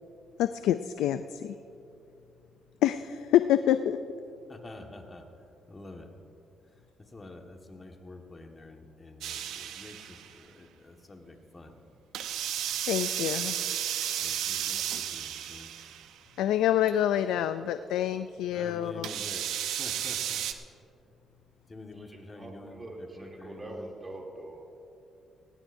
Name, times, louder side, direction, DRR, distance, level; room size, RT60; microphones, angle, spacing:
voice 1, 0.4-1.5 2.8-4.0 12.9-13.6 16.4-19.1, left 11 dB, 90° left, 11 dB, 0.3 m, -26 dB
voice 2, 4.5-5.2 5.7-6.1 7.1-11.8 14.2-15.7 18.5-20.4 21.7-23.9, left 2 dB, 25° left, 3 dB, 1.6 m, -47 dB
sound 1, 9.2-10.3 12.1-16.2 16.9-17.0 19.0-20.5, right 10 dB, 85° right, 0.7 m, -33 dB
voice 3, 21.9-24.6, right 1 dB, 25° right, -1 dB, 2.9 m, -43 dB
19.0 x 16.0 x 2.7 m, 2.8 s
cardioid pair, 90°, 0 cm